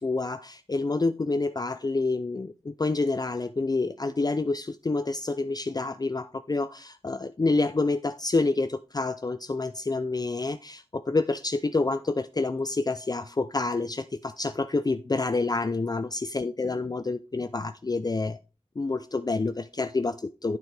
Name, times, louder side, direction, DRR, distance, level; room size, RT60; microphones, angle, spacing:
voice 1, 0.0-18.4 18.8-20.6, left 3 dB, 35° left, 0.4 m, -28 dB
9.2 x 8.1 x 3.4 m
wide cardioid pair, 45°, 11 cm